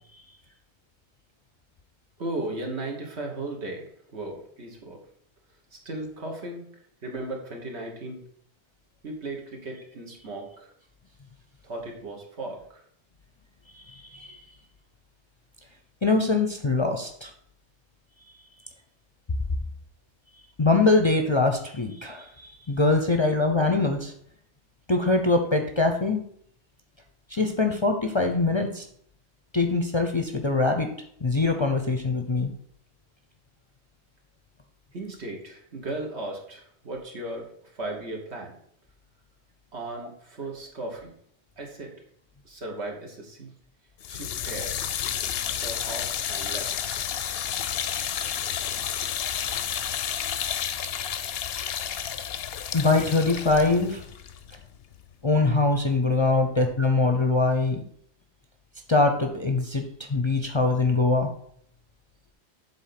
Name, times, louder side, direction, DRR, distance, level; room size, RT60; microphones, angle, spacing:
voice 1, 2.2-5.0 5.7-6.7 7.0-8.2 9.0-10.7 11.6-12.6 34.9-38.5 39.7-41.1 41.6-41.9 42.5-43.5 44.1-44.8 45.5-46.7, right 2 dB, 75° right, 0 dB, 1.9 m, -36 dB
voice 2, 13.7-14.3 16.0-17.3 20.6-24.1 24.9-26.2 27.3-28.8 29.5-30.9 31.2-32.5 52.7-54.0 55.2-57.8 58.9-59.8 60.1-61.3, left 3 dB, 30° left, 4 dB, 0.6 m, -23 dB
sound 1, 44.0-55.1, left 9 dB, 70° left, 0.8 m, -31 dB
7.5 x 4.0 x 5.8 m, 0.65 s
omnidirectional pair, 1.1 m